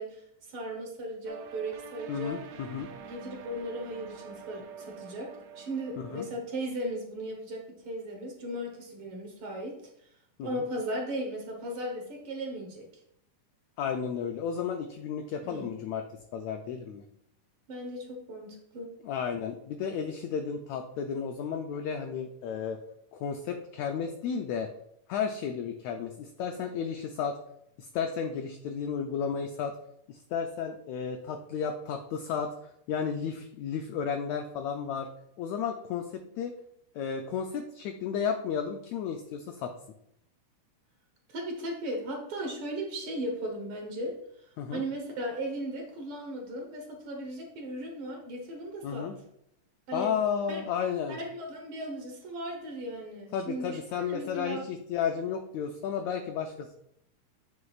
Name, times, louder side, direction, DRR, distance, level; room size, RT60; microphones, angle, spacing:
voice 1, 0.0-2.4 3.1-9.8 10.4-12.9 15.4-15.7 17.7-18.9 41.3-49.1 49.9-50.1 50.5-50.6 51.1-54.6, right 1 dB, 55° right, 2 dB, 1.7 m, -37 dB
sound 1, 1.3-6.4, right 6 dB, 80° right, 1.6 m, -46 dB
voice 2, 2.1-2.9 6.0-6.2 10.4-10.6 13.8-17.0 19.0-22.8 23.1-24.7 25.1-27.4 27.8-29.8 30.1-32.5 32.9-35.1 35.4-36.5 36.9-39.7 44.6-44.8 48.8-49.2 49.9-51.2 53.3-56.7, left 7 dB, 80° left, 5 dB, 1.6 m, -33 dB
9.5 x 6.1 x 2.4 m, 0.74 s
omnidirectional pair, 3.7 m